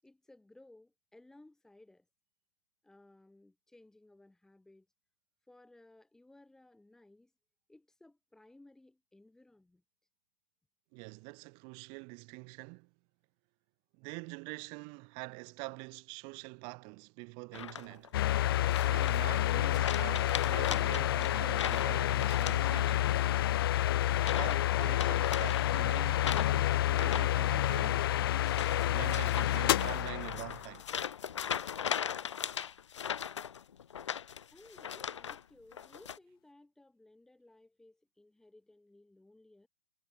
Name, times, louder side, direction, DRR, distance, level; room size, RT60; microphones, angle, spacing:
voice 1, 0.0-2.0 2.8-4.9 5.5-7.3 7.7-9.8 34.5-39.7, left 2 dB, 5° left, 6.8 m, -60 dB
voice 2, 10.9-12.9 13.9-18.2 18.9-23.2 24.4-28.1 28.8-30.9, right 36 dB, 35° right, 4.6 m, -45 dB
sound 1, 17.5-18.1 18.7-19.4 19.7-23.2 23.4-23.7 24.2-24.6 24.9-35.4 35.7-36.2, left 8 dB, 80° left, 1.3 m, -39 dB
sound 2, 18.1-30.8, left 13 dB, 55° left, 0.7 m, -29 dB
hypercardioid pair, 145°, 15 cm